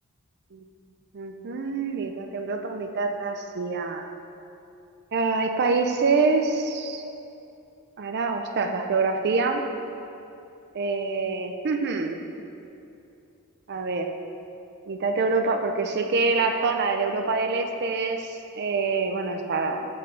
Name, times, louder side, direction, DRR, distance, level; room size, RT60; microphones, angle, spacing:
voice 1, 1.1-4.1 5.1-7.0 8.0-9.6 10.8-12.2 13.7-14.1 14.9-19.9, right 4 dB, 50° right, 5 dB, 0.4 m, -26 dB
7.3 x 3.8 x 4.3 m, 2.7 s
head